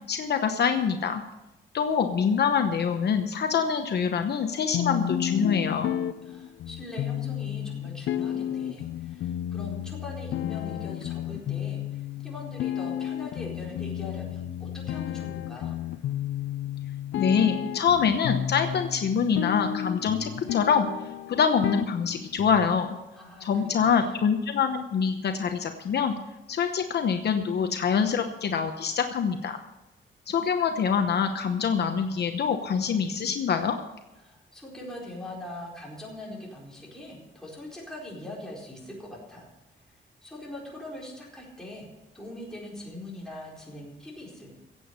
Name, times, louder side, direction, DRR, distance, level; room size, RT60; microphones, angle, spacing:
voice 1, 0.1-1.2 1.7-5.9 17.2-20.9 21.3-22.9 23.4-26.1 26.5-29.6 30.3-33.8, left 6 dB, 60° left, 6 dB, 0.9 m, -25 dB
sound 1, 4.7-22.7, left 11 dB, 85° left, 0.4 m, -32 dB
voice 2, 6.2-15.8 23.1-24.2 34.2-39.5 40.2-41.9 42.1-44.5, left 1 dB, 5° left, -4 dB, 4.3 m, -42 dB
16.5 x 8.1 x 6.6 m, 0.99 s
wide cardioid pair, 175°, 20 cm